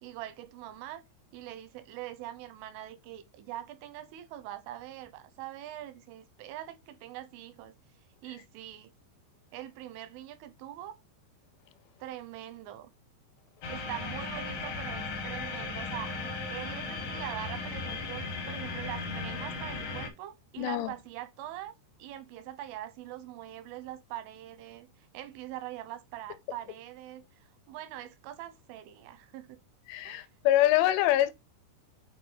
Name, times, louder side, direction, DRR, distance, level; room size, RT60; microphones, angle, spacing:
voice 1, 0.0-1.0 1.3-7.7 8.2-8.9 9.5-11.0 12.0-12.9 13.7-21.7 22.0-27.2 27.7-29.6 30.0-30.3, right 13 dB, 85° right, 3.4 m, -43 dB
sound 1, 13.6-20.1, left 3 dB, 65° left, 1.5 m, -36 dB
voice 2, 20.6-20.9 29.9-31.3, left 14 dB, 85° left, 3.0 m, -25 dB
9.3 x 3.4 x 3.9 m
omnidirectional pair, 5.5 m